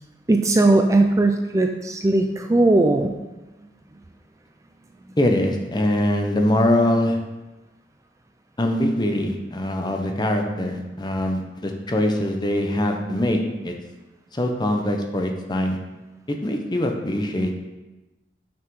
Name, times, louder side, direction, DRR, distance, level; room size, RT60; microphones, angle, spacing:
voice 1, 0.3-3.1, right 2 dB, 20° right, 5 dB, 0.4 m, -18 dB
voice 2, 5.2-7.2 8.6-13.7 14.3-15.8 16.3-17.6, left 1 dB, 25° left, 3 dB, 0.8 m, -23 dB
6.0 x 5.6 x 4.8 m, 1.1 s
head